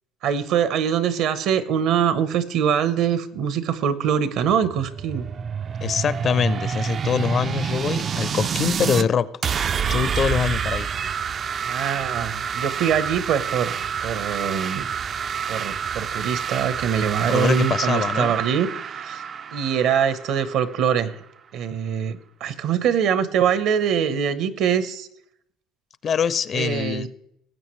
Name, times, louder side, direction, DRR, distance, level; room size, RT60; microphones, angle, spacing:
voice 1, 0.2-5.3 11.6-13.7 14.0-14.9 15.5-19.2 19.5-21.1 21.5-25.1 26.5-27.1, right 8 dB, 65° right, 0.9 m, -23 dB
sound 1, 4.5-9.0 9.4-21.0, right 7 dB, 35° right, 0.3 m, -28 dB
voice 2, 5.8-9.3 9.9-10.9 17.3-18.4 26.0-27.1, left 7 dB, 40° left, 0.5 m, -24 dB
19.0 x 8.3 x 3.2 m
cardioid pair, 120°, 0 cm